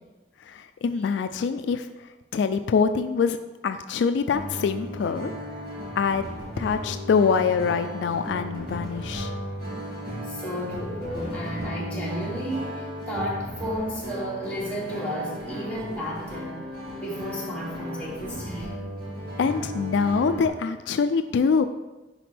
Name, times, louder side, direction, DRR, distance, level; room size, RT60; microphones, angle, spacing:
voice 1, 0.4-3.4 3.6-5.3 6.0-6.3 6.6-9.3 19.4-21.7, left 5 dB, 75° left, 9 dB, 0.3 m, -24 dB
sound 1, 4.3-20.5, equal, 60° right, 2.1 m, -35 dB
voice 2, 10.3-16.6 17.0-18.7, equal, 10° left, -8 dB, 2.3 m, -32 dB
10.0 x 4.3 x 3.3 m, 1.1 s
head